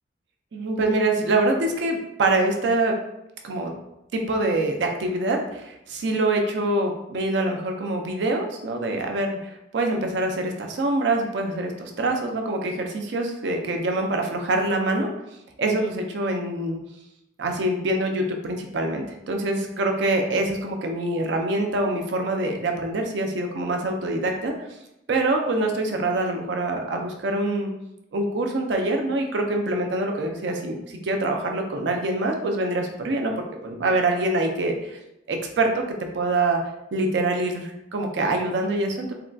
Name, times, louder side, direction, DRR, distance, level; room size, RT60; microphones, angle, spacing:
voice 1, 0.5-2.9 3.4-3.7 4.1-15.1 15.6-16.8 17.4-24.5 25.1-27.7 28.1-33.3 33.6-35.0 35.3-35.9 36.1-36.6 36.9-39.1, right 2 dB, 75° right, 3 dB, 0.4 m, -25 dB
3.6 x 2.2 x 2.3 m, 0.87 s
head